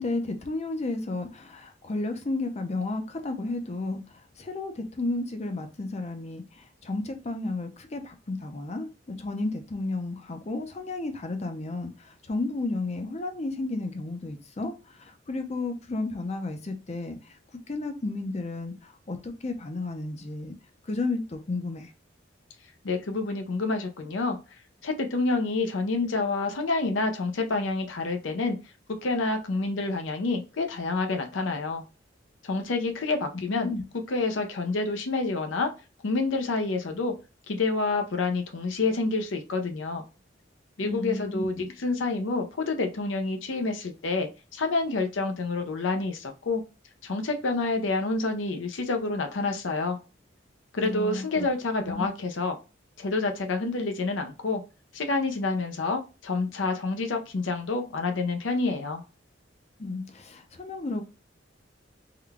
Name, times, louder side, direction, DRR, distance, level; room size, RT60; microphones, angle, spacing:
voice 1, 0.0-17.4 17.7-20.5 20.8-21.9 33.5-33.8 40.8-41.6 50.8-51.5 51.8-52.1 59.8-61.0, left 2 dB, 35° left, 0.6 m, -32 dB
voice 2, 22.8-24.4 24.8-28.6 29.0-31.8 32.4-33.7 34.1-35.7 36.0-37.1 37.5-40.0 40.8-46.6 47.0-50.0 50.7-52.6 53.0-54.6 54.9-59.0, left 3 dB, 85° left, 0.6 m, -28 dB
3.7 x 2.2 x 3.4 m
head